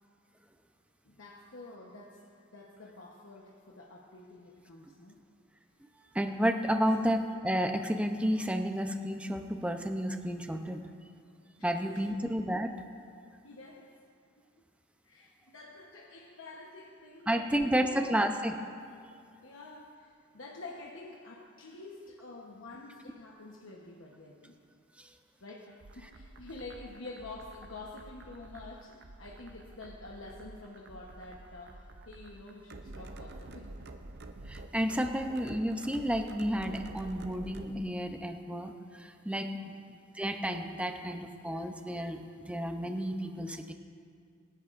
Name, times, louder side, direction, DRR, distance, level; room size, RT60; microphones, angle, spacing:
voice 1, 1.0-2.3 2.5-5.2 6.7-6.9 11.6-12.1 13.4-13.9 15.0-18.2 19.4-24.6 25.4-33.7 34.5-34.7 39.5-39.7, left 2 dB, 70° left, -2 dB, 1.1 m, -48 dB
voice 2, 6.1-10.9 11.6-12.7 17.3-18.6 25.0-25.1 34.5-39.7 40.1-43.7, equal, 5° right, 6 dB, 0.6 m, -31 dB
sound 1, 25.8-37.8, right 2 dB, 55° right, 0.6 m, -48 dB
24.0 x 10.5 x 2.6 m, 2.2 s
head